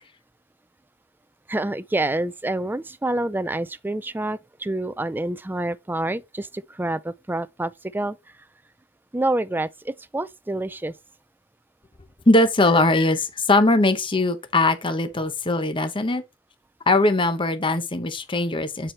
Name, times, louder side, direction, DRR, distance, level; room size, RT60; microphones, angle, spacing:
voice 1, 1.5-8.2 9.1-10.9, right 2 dB, 10° right, 0.4 m, -27 dB
voice 2, 12.3-16.2 16.9-18.9, left 2 dB, 25° left, 0.9 m, -20 dB
8.7 x 4.8 x 3.3 m
head